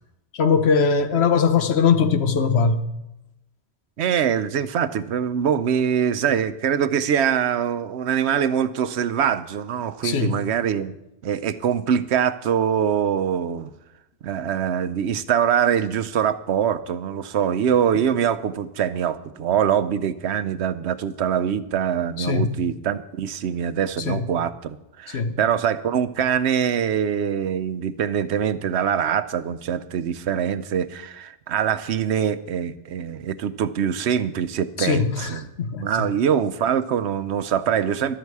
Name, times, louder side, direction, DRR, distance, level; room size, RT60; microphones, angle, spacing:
voice 1, 0.3-2.8 10.0-10.4 22.2-22.5 24.0-24.2 25.1-25.4 34.8-36.1, left 5 dB, 75° left, 1.2 m, -21 dB
voice 2, 4.0-10.9 11.2-13.7 14.2-35.5 35.8-38.2, right 8 dB, 80° right, 1.0 m, -23 dB
14.0 x 12.5 x 4.7 m
omnidirectional pair, 1.1 m